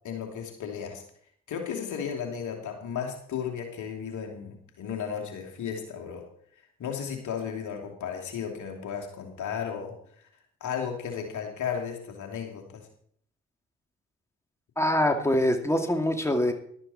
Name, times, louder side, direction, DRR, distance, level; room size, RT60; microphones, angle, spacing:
voice 1, 0.0-1.0 1.5-6.2 6.8-9.9 10.6-12.8, left 7 dB, 65° left, 3 dB, 3.0 m, -34 dB
voice 2, 14.8-16.5, left 1 dB, 10° left, 4 dB, 2.5 m, -24 dB
13.5 x 12.5 x 4.4 m, 0.63 s
hypercardioid pair, 45°, 32 cm